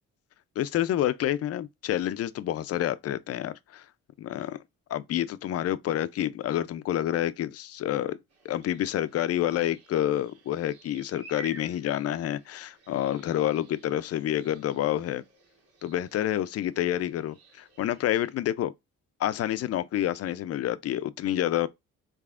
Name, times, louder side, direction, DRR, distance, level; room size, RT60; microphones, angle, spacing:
voice 1, 0.6-3.8 4.2-4.6 4.9-8.2 8.4-15.2 15.8-18.7 19.2-21.7, left 12 dB, 55° left, 0.4 m, -28 dB
sound 1, 8.3-18.3, right 3 dB, 55° right, 1.7 m, -53 dB
4.0 x 3.4 x 2.4 m
cardioid pair, 90°, 30 cm